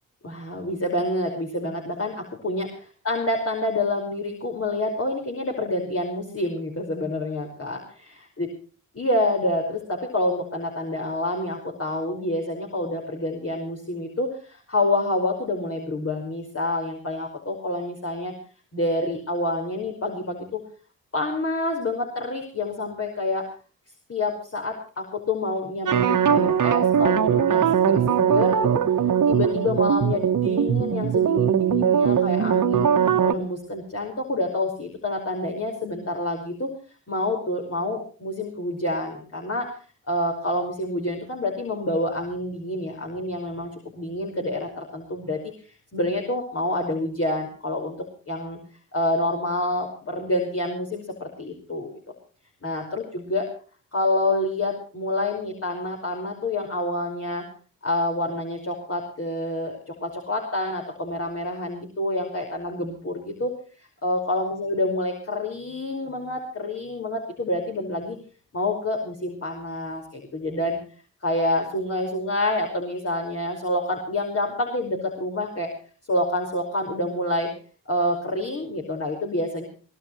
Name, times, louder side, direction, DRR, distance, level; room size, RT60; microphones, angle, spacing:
voice 1, 0.2-8.5 9.0-18.3 18.7-20.6 21.1-23.5 24.1-28.8 29.3-32.9 33.2-36.7 37.1-39.7 40.1-45.4 45.9-48.6 48.9-51.9 52.6-53.4 53.9-57.4 57.8-63.5 64.0-68.2 68.5-70.8 71.2-75.7 76.1-77.5 77.9-79.6, left 1 dB, 35° left, 1 dB, 5.2 m, -27 dB
sound 1, 25.9-33.3, right 8 dB, 50° right, 1.8 m, -20 dB
23.5 x 17.0 x 3.2 m, 0.40 s
hypercardioid pair, 45°, 39 cm